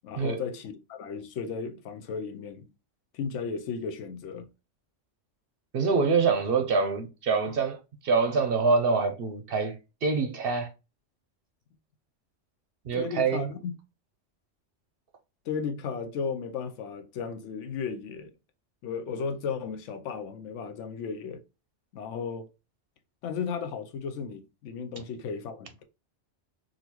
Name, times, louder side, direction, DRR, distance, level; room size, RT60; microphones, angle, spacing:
voice 1, 0.0-2.7 3.1-4.5 12.9-13.8 15.5-18.3 18.8-21.4 21.9-22.5 23.2-25.8, left 6 dB, 75° left, 0.9 m, -35 dB
voice 2, 5.7-7.8 8.0-10.7 12.9-13.5, right 4 dB, 60° right, 0.7 m, -25 dB
3.7 x 2.4 x 2.9 m
omnidirectional pair, 1.3 m